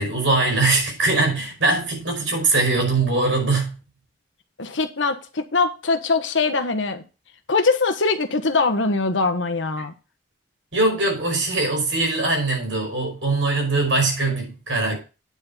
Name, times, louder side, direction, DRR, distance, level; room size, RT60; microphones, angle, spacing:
voice 1, 0.0-3.8 9.8-9.9 10.7-15.0, right 3 dB, 90° right, 5.1 m, -21 dB
voice 2, 4.6-7.0 7.5-9.9, left 3 dB, 90° left, 1.2 m, -22 dB
9.6 x 4.7 x 7.1 m
head